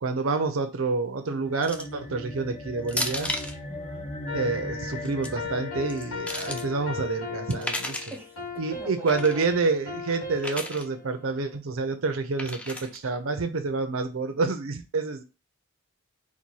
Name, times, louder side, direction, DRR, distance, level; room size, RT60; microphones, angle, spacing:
voice 1, 0.0-3.3 4.3-8.1 8.6-15.2, right 4 dB, 80° right, 0.6 m, -28 dB
sound 1, 1.3-7.9, left 1 dB, 35° left, 0.7 m, -39 dB
sound 2, 1.6-2.0 2.9-3.6 4.9-5.3 5.9-6.6 7.5-8.2 9.1-9.4 10.4-10.8 12.4-13.0, left 1 dB, 5° left, 0.4 m, -33 dB
voice 2, 3.7-4.1 8.1-8.4 8.7-9.5, right 1 dB, 10° right, 0.8 m, -44 dB
sound 3, 4.3-11.6, left 4 dB, 70° left, 1.4 m, -38 dB
4.1 x 2.2 x 4.5 m
head